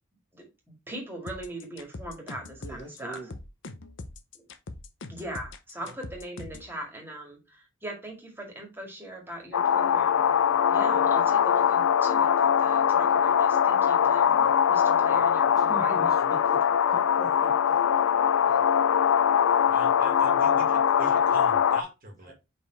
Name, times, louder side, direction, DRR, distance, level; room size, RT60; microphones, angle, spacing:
voice 1, 0.9-3.2 4.3-4.4 5.1-14.3 14.7-16.0, right 1 dB, 10° right, 2.1 m, -40 dB
sound 1, 1.3-6.7, left 2 dB, 60° left, 0.8 m, -42 dB
voice 2, 2.6-3.4 14.4-14.6 15.1-17.8 18.5-18.6 22.3-22.4, right 1 dB, 20° left, 1.9 m, -42 dB
sound 2, 9.5-21.8, left 8 dB, 85° left, 0.4 m, -22 dB
voice 3, 19.6-22.3, right 2 dB, 45° right, 1.8 m, -42 dB
5.3 x 4.3 x 4.5 m
head